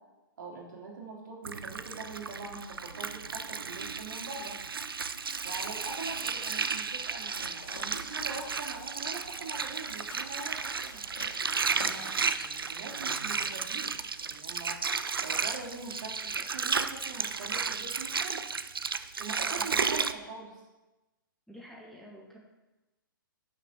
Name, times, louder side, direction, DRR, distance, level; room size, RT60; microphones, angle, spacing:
voice 1, 0.4-4.6 5.4-11.0 11.7-13.9 14.2-14.8 15.2-18.4 19.2-20.6, right 3 dB, 55° right, -2 dB, 2.9 m, -43 dB
Water, 1.4-20.1, right 5 dB, 80° right, 0.6 m, -33 dB
sound 1, 2.3-2.4 2.7-2.8 4.9-12.1, left 2 dB, 70° left, 3.1 m, -51 dB
voice 2, 19.6-19.9 21.5-22.4, equal, ahead, -3 dB, 1.6 m, -49 dB
10.5 x 6.6 x 5.8 m, 1.1 s
figure-of-eight pair, 125°, 12 cm